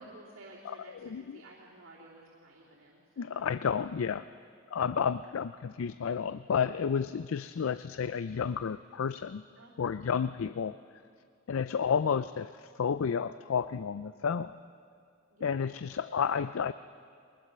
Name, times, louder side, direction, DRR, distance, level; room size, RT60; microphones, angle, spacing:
voice 1, 0.0-3.4 5.2-5.4 9.6-9.7 10.4-10.5 15.3-15.6, right 2 dB, 80° right, -7 dB, 3.1 m, -54 dB
voice 2, 1.0-1.4 3.2-4.2 4.7-9.4 9.8-10.8 11.5-14.5 15.4-16.7, left 6 dB, 80° left, 14 dB, 0.4 m, -31 dB
23.0 x 20.0 x 6.7 m, 2.3 s
head